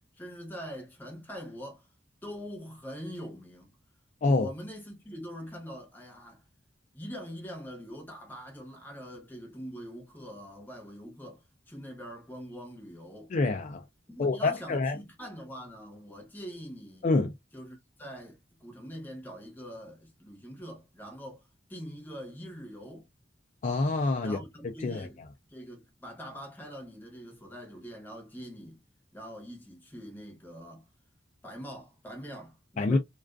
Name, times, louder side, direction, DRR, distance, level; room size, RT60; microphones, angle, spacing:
voice 1, 0.2-1.9 2.2-3.7 4.2-6.4 6.9-13.3 14.1-17.0 17.5-23.1 24.2-25.2 25.5-28.8 29.1-30.8 31.4-33.0, equal, 10° left, 0.8 m, -43 dB
voice 2, 13.3-13.8 14.2-15.0 17.0-17.3 23.6-24.4 24.8-25.1 32.8-33.0, left 3 dB, 40° left, 0.3 m, -26 dB
2.4 x 2.3 x 2.3 m
head